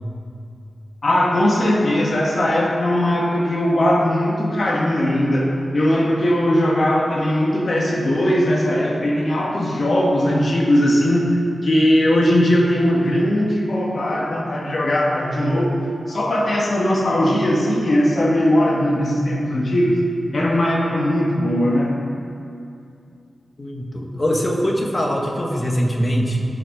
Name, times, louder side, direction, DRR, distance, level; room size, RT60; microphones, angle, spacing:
voice 1, 1.0-15.8 16.1-20.0 20.3-21.9, left 1 dB, 55° left, -2 dB, 1.4 m, -19 dB
voice 2, 23.6-26.4, equal, 30° left, 0 dB, 1.5 m, -22 dB
13.0 x 6.4 x 6.0 m, 2.5 s
wide cardioid pair, 115°, 0 cm